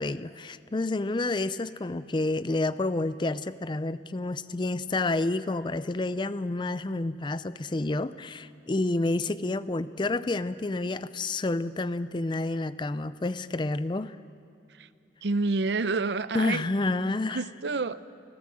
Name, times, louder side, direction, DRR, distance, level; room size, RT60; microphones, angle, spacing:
voice 1, 0.0-14.2 16.3-17.4, left 2 dB, 25° left, 15 dB, 0.5 m, -29 dB
voice 2, 15.2-16.6 17.3-18.0, right 3 dB, 75° right, 15 dB, 0.6 m, -28 dB
25.0 x 16.5 x 7.6 m, 2.6 s
head